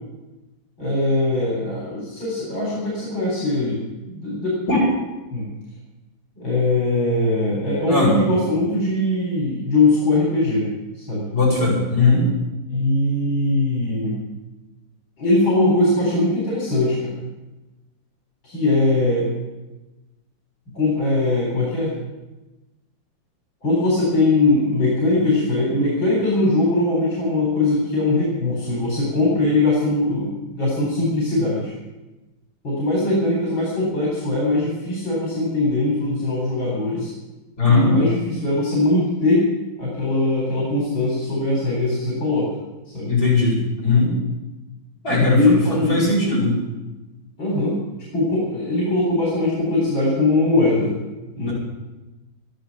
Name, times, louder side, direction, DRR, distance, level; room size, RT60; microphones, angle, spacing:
voice 1, 0.8-3.8 4.1-4.7 5.3-5.5 6.4-11.3 12.7-14.2 15.2-17.1 18.4-19.3 20.7-21.9 23.6-31.7 32.6-37.1 37.6-39.4 39.8-42.5 42.9-43.1 45.1-46.3 47.4-47.8 48.1-51.0 51.3-51.5, left 2 dB, 70° left, -4 dB, 4.9 m, -21 dB
voice 2, 7.9-8.2 11.3-12.2 37.6-37.9 43.1-44.1 45.0-45.4 45.9-46.6 51.5-51.6, left 3 dB, 50° left, -6 dB, 8.6 m, -18 dB
13.5 x 11.5 x 8.7 m, 1.1 s
omnidirectional pair, 2.1 m